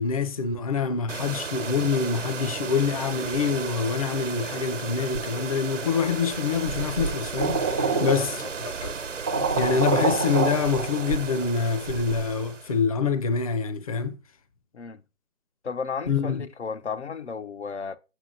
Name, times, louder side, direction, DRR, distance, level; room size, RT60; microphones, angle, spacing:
voice 1, 0.0-8.3 8.6-8.9 9.6-14.2 16.1-16.4, left 5 dB, 25° left, 0.9 m, -26 dB
sound 1, 1.1-12.8, right 5 dB, 65° right, 1.2 m, -34 dB
sound 2, 7.4-8.7 9.0-9.1 9.3-11.5, right 4 dB, 10° right, 0.7 m, -26 dB
voice 2, 7.9-8.5 14.7-15.0 15.6-18.0, left 5 dB, 60° left, 1.1 m, -34 dB
8.2 x 7.5 x 4.0 m
figure-of-eight pair, 145°, 39 cm